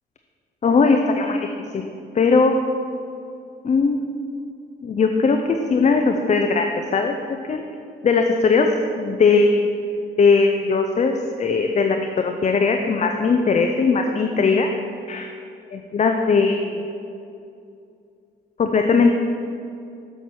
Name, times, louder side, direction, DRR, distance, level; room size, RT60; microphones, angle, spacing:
voice 1, 0.6-1.4 1.7-1.9 2.1-2.6 3.6-4.2 4.8-7.2 7.5-7.6 8.0-8.7 9.0-9.7 10.2-14.7 15.1-15.2 15.9-16.8 18.6-19.2, left 4 dB, 35° left, 4 dB, 0.6 m, -19 dB
7.0 x 5.9 x 6.2 m, 2.5 s
cardioid pair, 90°, 20 cm